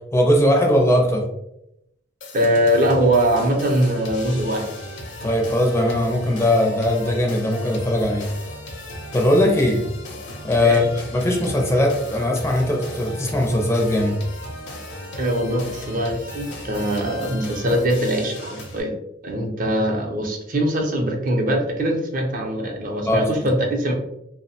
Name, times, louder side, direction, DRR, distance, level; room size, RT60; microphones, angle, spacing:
voice 1, 0.1-1.2 5.2-8.3 9.1-9.8 10.4-10.9 11.1-14.2 23.0-23.2, left 1 dB, 15° left, 0 dB, 0.4 m, -19 dB
sound 1, 2.2-18.8, left 1 dB, 70° left, 0.6 m, -36 dB
voice 2, 2.3-4.7 10.6-10.8 15.1-18.9 19.2-23.9, right 1 dB, 45° right, 2 dB, 0.5 m, -22 dB
2.6 x 2.0 x 2.7 m, 0.81 s
head